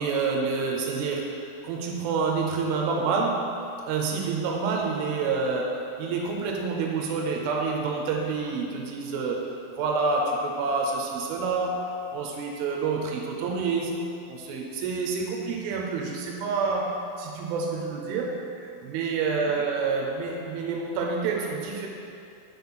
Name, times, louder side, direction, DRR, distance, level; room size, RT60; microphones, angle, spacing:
voice 1, 0.0-3.5 3.9-14.0 14.3-21.9, right 4 dB, 80° right, 0 dB, 2.5 m, -28 dB
9.5 x 4.1 x 5.7 m, 2.7 s
omnidirectional pair, 4.4 m